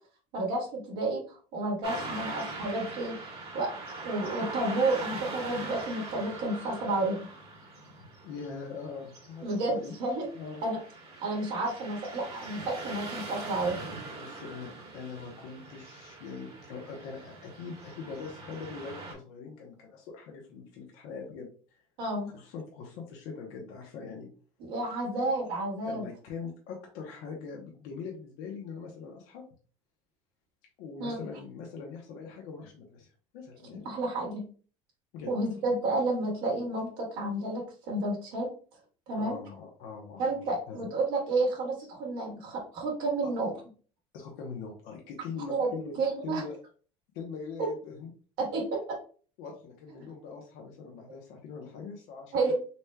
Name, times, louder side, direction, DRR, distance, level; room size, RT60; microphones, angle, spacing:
voice 1, 0.3-3.2 3.5-3.7 4.0-7.3 9.4-10.3 10.6-10.8 11.2-13.8 22.0-22.3 24.6-26.1 31.0-31.1 33.8-34.4 35.3-38.5 39.1-39.4 40.2-43.5 45.5-45.7 46.0-46.4 48.4-49.0 52.3-52.5, right 2 dB, 75° right, -1 dB, 1.7 m, -31 dB
Car passing by / Traffic noise roadway noise, 1.8-19.1, right 3 dB, 40° right, 1.4 m, -42 dB
voice 2, 8.2-9.9 10.4-10.6 14.2-21.5 22.3-24.3 25.8-29.4 30.8-33.1 33.3-33.9 35.1-35.3 39.1-40.3 40.7-40.9 43.2-43.3 44.1-46.0 46.2-46.6 47.1-48.1 49.4-52.5, left 5 dB, 75° left, 0 dB, 1.0 m, -42 dB
4.1 x 3.1 x 2.2 m, 0.40 s
supercardioid pair, 90°, 15 cm